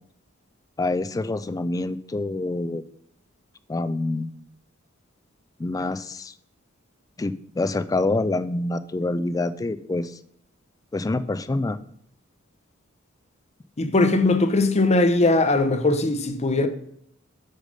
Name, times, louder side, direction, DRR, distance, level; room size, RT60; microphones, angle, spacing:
voice 1, 0.8-2.8 3.7-4.3 5.6-6.3 7.2-10.2 10.9-11.8, left 2 dB, 15° left, 0.3 m, -26 dB
voice 2, 13.8-16.7, left 2 dB, 35° left, 0.7 m, -20 dB
6.4 x 5.6 x 5.1 m
head